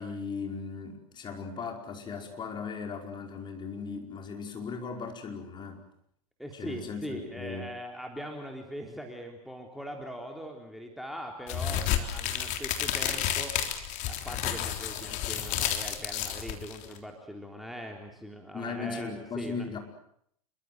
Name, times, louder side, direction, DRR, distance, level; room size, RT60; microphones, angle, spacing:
voice 1, 0.0-5.8 6.5-7.7 18.5-19.8, left 5 dB, 25° left, 3 dB, 5.1 m, -37 dB
voice 2, 6.4-13.5 14.1-19.7, equal, ahead, 2 dB, 3.5 m, -41 dB
sound 1, 11.5-17.0, left 10 dB, 40° left, 3.6 m, -31 dB
27.5 x 23.5 x 7.9 m, 0.71 s
figure-of-eight pair, 95°, 19 cm